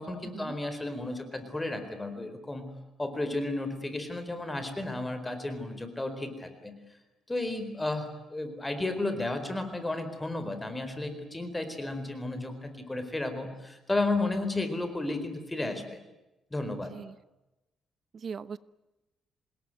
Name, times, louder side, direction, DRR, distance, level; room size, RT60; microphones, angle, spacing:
voice 1, 0.0-6.7 7.3-16.0 16.5-16.9, left 2 dB, 15° left, 9 dB, 4.3 m, -33 dB
voice 2, 16.7-17.1 18.1-18.6, right 6 dB, 45° right, 16 dB, 1.0 m, -40 dB
27.5 x 20.5 x 9.3 m, 1.0 s
cardioid pair, 120°, 0 cm